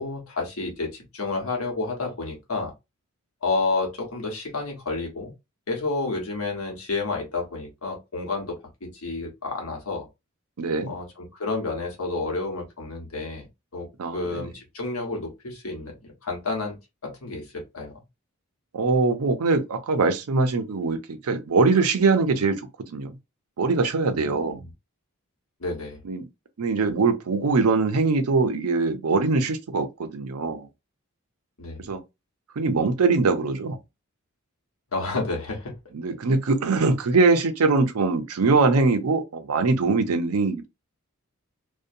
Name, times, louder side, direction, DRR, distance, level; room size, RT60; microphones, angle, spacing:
voice 1, 0.0-2.7 3.4-5.3 5.7-10.1 10.9-13.4 13.7-13.9 14.1-16.8 17.0-17.9 24.1-24.7 25.6-26.0 31.6-31.9 34.9-35.7, left 3 dB, 75° left, 1.1 m, -30 dB
voice 2, 10.6-10.9 14.0-14.5 18.7-23.2 23.6-24.6 26.0-26.3 26.6-30.7 31.9-32.0 32.6-33.8 35.9-40.7, right 3 dB, 85° right, 0.5 m, -22 dB
2.6 x 2.2 x 2.6 m
head